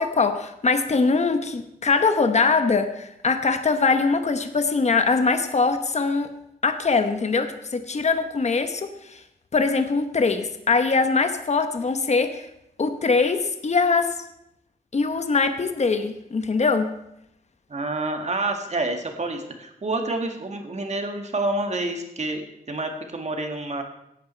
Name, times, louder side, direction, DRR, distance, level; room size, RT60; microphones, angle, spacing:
voice 1, 0.0-6.3 6.6-9.2 9.5-12.5 12.8-14.1 14.9-16.9, left 4 dB, 45° left, 8 dB, 1.0 m, -22 dB
voice 2, 17.7-22.4 22.7-23.8, right 2 dB, 45° right, 4 dB, 1.9 m, -28 dB
16.5 x 9.2 x 4.5 m, 0.80 s
wide cardioid pair, 110°, 15 cm